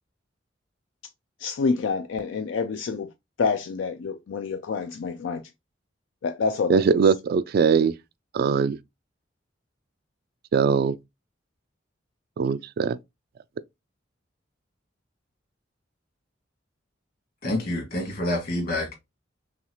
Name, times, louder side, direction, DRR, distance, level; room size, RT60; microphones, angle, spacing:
voice 1, 1.4-3.1 3.4-5.4 6.2-7.0, left 5 dB, 70° left, 0.4 m, -27 dB
voice 2, 6.7-7.9 8.3-8.8 10.5-11.0 12.4-13.0, right 5 dB, 55° right, 0.3 m, -21 dB
voice 3, 17.4-19.0, left 1 dB, 55° left, 2.0 m, -27 dB
5.7 x 2.4 x 3.0 m
head